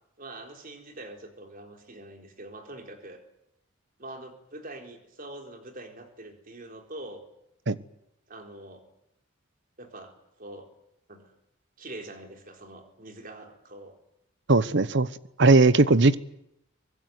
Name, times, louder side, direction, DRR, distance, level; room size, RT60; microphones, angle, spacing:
voice 1, 0.2-3.2 4.0-7.2 8.3-8.8 9.8-10.7 11.1-11.3 11.8-14.0, right 1 dB, 40° right, 4 dB, 4.2 m, -44 dB
voice 2, 14.5-15.1 15.4-16.2, right 3 dB, 60° right, 16 dB, 1.0 m, -18 dB
24.0 x 20.5 x 9.5 m, 0.79 s
head